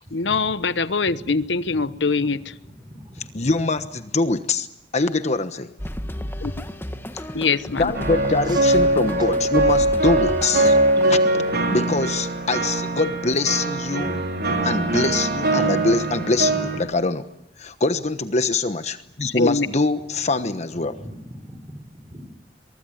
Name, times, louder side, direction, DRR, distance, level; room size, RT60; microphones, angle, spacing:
voice 1, 0.1-2.4 6.4-6.5 7.3-8.0 19.3-19.7, left 4 dB, 90° left, 14 dB, 1.0 m, -23 dB
voice 2, 1.0-1.3 1.7-1.9 2.9-3.3 8.5-8.6 21.0-22.2, equal, 25° right, 8 dB, 5.3 m, -40 dB
voice 3, 3.3-4.7 4.9-5.7 7.1-7.3 7.8-10.8 11.1-11.2 11.7-14.1 14.6-17.3 17.6-21.0, left 3 dB, 40° left, 10 dB, 1.1 m, -23 dB
sound 1, 5.8-11.9, equal, 15° left, 1.5 m, -33 dB
sound 2, 7.9-16.8, right 2 dB, 60° right, 4.4 m, -22 dB
23.5 x 23.5 x 9.3 m, 0.82 s
head